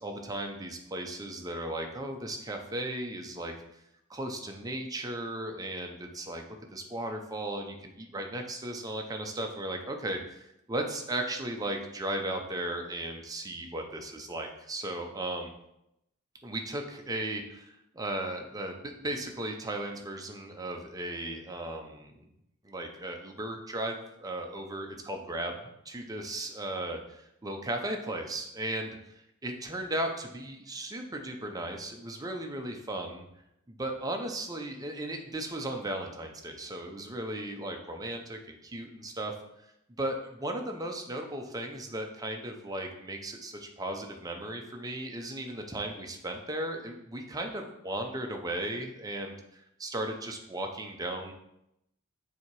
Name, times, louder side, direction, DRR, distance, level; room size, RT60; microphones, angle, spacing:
voice 1, 0.0-3.5 4.1-6.4 6.7-15.5 16.4-22.3 22.6-25.6 25.8-29.0 29.4-33.2 33.7-39.3 40.0-51.3, right 1 dB, 15° right, 3 dB, 0.6 m, -36 dB
7.0 x 2.9 x 4.6 m, 0.82 s
head